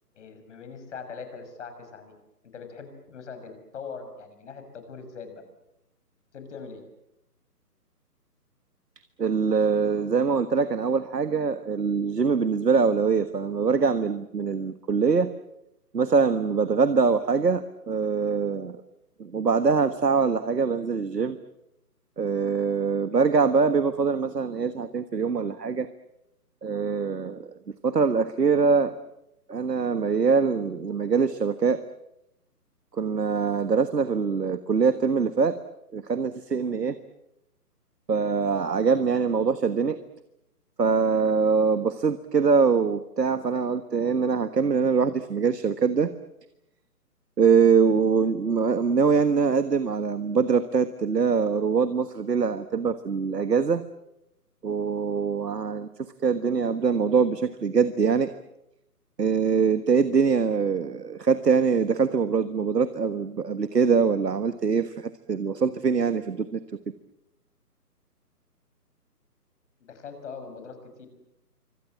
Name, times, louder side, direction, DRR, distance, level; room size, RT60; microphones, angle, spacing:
voice 1, 0.1-2.1 2.5-5.4 6.3-6.8 69.8-71.1, left 5 dB, 45° left, 7 dB, 6.4 m, -41 dB
voice 2, 9.2-15.3 15.9-18.8 19.2-21.4 22.2-25.9 26.6-27.5 27.8-28.9 29.5-31.8 32.9-35.6 35.9-37.0 38.1-40.0 40.8-46.1 47.4-53.8 54.6-55.9 56.2-58.3 59.2-66.6, right 5 dB, 80° right, 12 dB, 1.6 m, -23 dB
26.5 x 25.0 x 7.5 m, 0.85 s
figure-of-eight pair, 145°, 48 cm